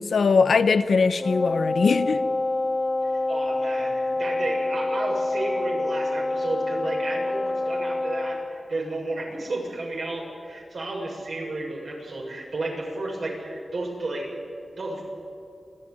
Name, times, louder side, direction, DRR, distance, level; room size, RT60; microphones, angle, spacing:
voice 1, 0.0-2.2, left 5 dB, 80° left, 0.9 m, -21 dB
Wind instrument woodwind instrument, 1.2-8.5, left 2 dB, 40° left, 1.6 m, -27 dB
voice 2, 3.0-14.3 14.7-15.0, right 2 dB, 65° right, 7.1 m, -32 dB
28.0 x 13.5 x 9.7 m
wide cardioid pair, 85°, 0 cm